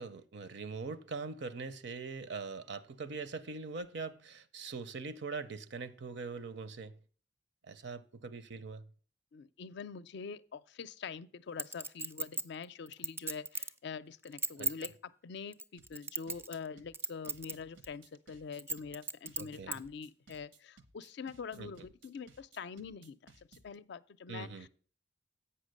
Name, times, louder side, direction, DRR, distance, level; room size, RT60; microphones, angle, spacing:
voice 1, 0.0-7.0 7.6-8.8 14.6-14.7 19.4-19.8 21.6-21.9 24.3-24.7, right 4 dB, 70° right, 0.6 m, -42 dB
voice 2, 9.3-24.7, left 5 dB, 65° left, 0.4 m, -45 dB
Chink clink, 11.6-13.8 14.2-14.9 15.5-16.7 16.9-17.5 17.8-17.9 18.6-19.8 20.3-20.4, right 3 dB, 10° right, 0.3 m, -36 dB
sound 1, 15.8-23.8, right 3 dB, 90° right, 1.0 m, -60 dB
8.1 x 5.7 x 6.4 m
head